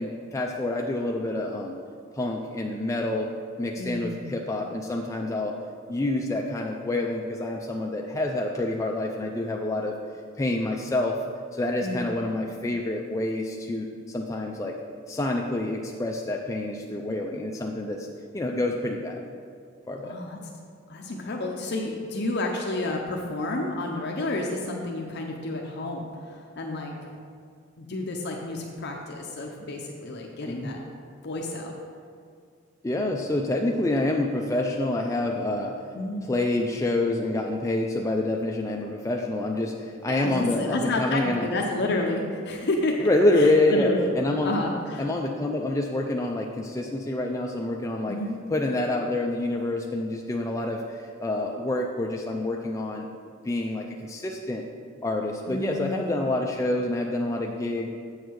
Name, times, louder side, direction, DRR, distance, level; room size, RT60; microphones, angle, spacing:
voice 1, 0.0-1.8 2.1-3.3 3.6-5.5 5.9-9.9 10.4-11.2 11.5-14.8 15.1-18.1 18.3-19.2 19.9-20.2 30.5-30.8 32.8-35.8 36.2-41.5 43.0-44.6 45.0-48.2 48.5-53.1 53.4-54.6 55.0-57.9, left 2 dB, 15° left, 1 dB, 0.4 m, -27 dB
voice 2, 3.7-4.1 11.8-12.1 20.0-20.4 20.9-26.9 27.8-30.8 31.2-31.7 35.9-36.3 40.1-43.1 43.3-44.0 44.3-45.1 48.1-48.4 55.5-56.2, left 2 dB, 55° left, 1 dB, 0.7 m, -30 dB
8.0 x 6.5 x 4.6 m, 2.2 s
head